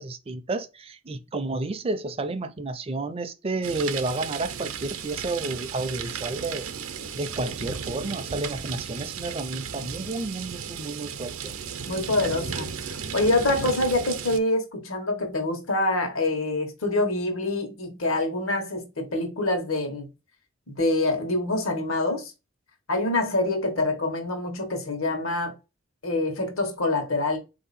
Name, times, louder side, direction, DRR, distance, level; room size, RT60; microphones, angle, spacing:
voice 1, 0.0-6.7 7.2-11.5, right 2 dB, 30° right, 0.4 m, -31 dB
sound 1, 3.6-14.4, right 7 dB, 80° right, 0.6 m, -35 dB
voice 2, 11.9-20.1 20.7-22.3 22.9-25.5 26.0-27.4, left 2 dB, 75° left, 1.3 m, -26 dB
4.1 x 2.8 x 4.1 m
head